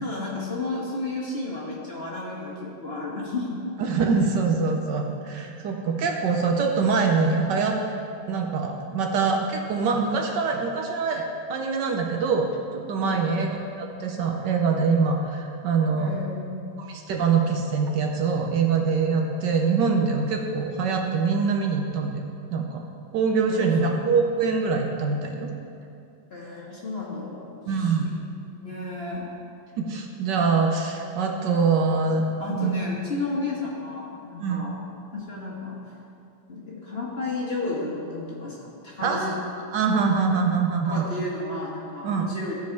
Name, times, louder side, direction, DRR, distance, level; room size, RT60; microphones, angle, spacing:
voice 1, 0.0-3.7 13.0-13.4 15.9-16.7 23.5-24.0 26.3-28.1 28.5-29.3 32.4-34.8 35.1-35.8 36.5-39.4 40.8-42.6, left 3 dB, 35° left, -5 dB, 1.2 m, -33 dB
voice 2, 3.8-7.8 8.3-11.2 11.5-16.1 16.8-22.2 22.5-22.8 23.1-25.5 27.7-28.1 29.8-32.7 34.4-34.6 39.0-39.3 39.7-41.1 42.0-42.3, right 5 dB, 70° right, 2 dB, 1.3 m, -24 dB
14.5 x 4.9 x 4.6 m, 2.5 s
omnidirectional pair, 2.2 m